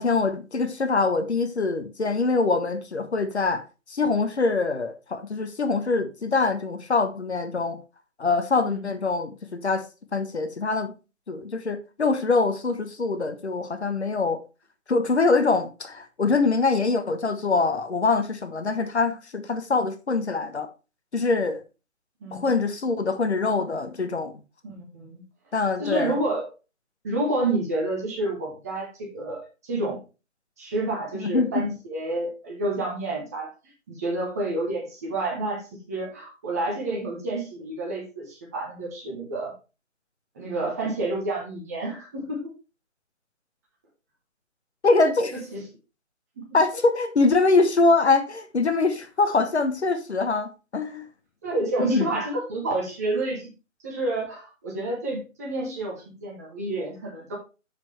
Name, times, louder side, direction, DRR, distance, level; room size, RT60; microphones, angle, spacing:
voice 1, 0.0-3.6 3.9-7.8 8.2-9.8 10.1-10.9 11.3-14.4 14.9-20.7 21.1-21.6 22.3-24.4 25.5-26.2 31.1-31.6 44.8-45.4 46.5-51.1 51.9-52.1, left 3 dB, 55° left, 1.2 m, -24 dB
voice 2, 22.2-22.5 24.6-25.2 25.8-26.5 27.0-30.0 30.6-33.5 33.9-39.5 40.3-42.5 45.3-45.6 46.4-46.5 51.4-53.5 53.8-57.3, right 2 dB, 10° right, 1.1 m, -29 dB
7.2 x 6.4 x 3.3 m
figure-of-eight pair, 155°, 39 cm